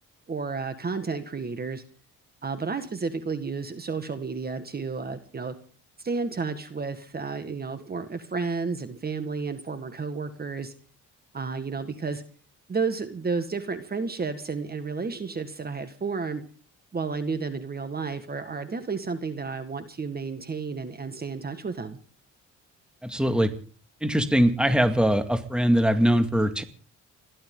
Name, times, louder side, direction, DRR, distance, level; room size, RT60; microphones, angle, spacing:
voice 1, 0.3-1.8 2.4-5.5 6.0-10.7 11.3-12.2 12.7-16.4 16.9-22.0, right 4 dB, 30° right, 9 dB, 1.7 m, -31 dB
voice 2, 23.0-23.5 24.0-26.6, equal, 5° right, 8 dB, 2.0 m, -22 dB
29.5 x 12.0 x 3.8 m, 0.41 s
cardioid pair, 90°, 30 cm